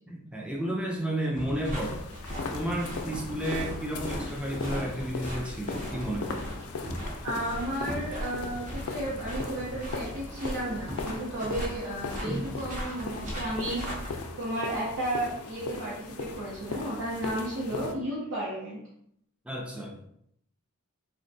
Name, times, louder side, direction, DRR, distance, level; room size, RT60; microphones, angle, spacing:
voice 1, 0.1-2.0 2.5-6.5 12.2-12.4 19.5-20.0, right 1 dB, 5° right, -1 dB, 0.4 m, -32 dB
crunchy footsteps in the snow, 1.3-14.1, equal, 35° right, 0.7 m, -38 dB
sound 1, 1.7-17.9, left 4 dB, 85° left, 0.4 m, -39 dB
voice 2, 7.2-14.0 14.4-18.8, right 1 dB, 80° right, -7 dB, 0.7 m, -33 dB
3.4 x 2.2 x 2.6 m, 0.71 s
head